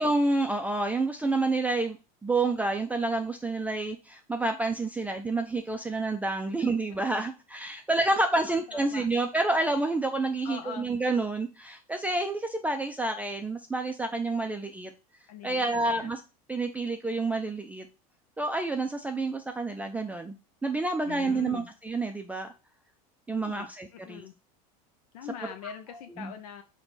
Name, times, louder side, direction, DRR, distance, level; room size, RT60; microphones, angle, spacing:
voice 1, 0.0-2.0 2.2-14.9 15.4-16.2 16.5-17.9 18.4-20.3 20.6-22.5 23.3-24.3 25.6-25.7 26.2-26.3, right 2 dB, 10° right, 5 dB, 0.3 m, -29 dB
voice 2, 8.5-9.1 10.4-10.9 15.3-16.1 21.1-21.7 23.4-24.4 25.1-26.6, left 8 dB, 85° left, 6 dB, 0.5 m, -42 dB
4.4 x 2.2 x 4.0 m, 0.30 s
supercardioid pair, 115°, 19 cm